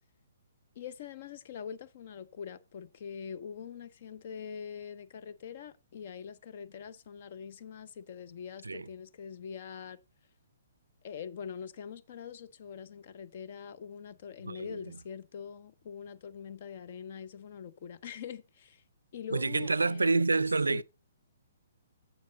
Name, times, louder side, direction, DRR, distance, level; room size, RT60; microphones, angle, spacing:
voice 1, 0.8-10.0 11.0-18.8 19.1-20.1 20.7-20.8, left 7 dB, 50° left, 0.7 m, -43 dB
voice 2, 14.4-15.0 19.3-20.8, right 3 dB, 90° right, 0.4 m, -28 dB
7.3 x 7.1 x 4.0 m
hypercardioid pair, 135°, 0 cm